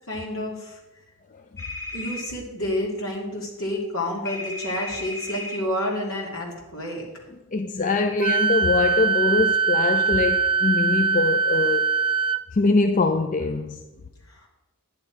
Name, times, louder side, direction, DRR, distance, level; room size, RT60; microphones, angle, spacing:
voice 1, 0.1-0.8 1.9-7.1 14.3-14.5, left 1 dB, 65° left, 2.8 m, -29 dB
sound 1, 1.6-2.2 4.3-5.6, left 2 dB, 10° left, 1.7 m, -34 dB
voice 2, 7.5-11.9 12.5-13.8, left 3 dB, 35° left, 0.4 m, -23 dB
Wind instrument woodwind instrument, 8.2-12.4, right 5 dB, 20° right, 0.4 m, -22 dB
10.5 x 9.9 x 4.8 m
head